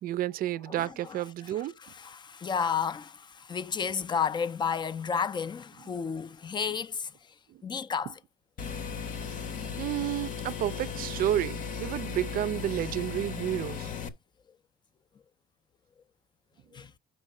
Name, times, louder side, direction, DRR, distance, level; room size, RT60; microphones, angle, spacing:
voice 1, 0.0-1.7 9.8-13.9, right 13 dB, 60° right, 0.4 m, -31 dB
voice 2, 0.7-7.1 7.6-8.2 16.7-16.9, left 6 dB, 25° left, 0.4 m, -32 dB
sound 1, 8.6-14.1, left 6 dB, 50° left, 1.0 m, -36 dB
5.4 x 5.3 x 4.7 m
cardioid pair, 110°, 17 cm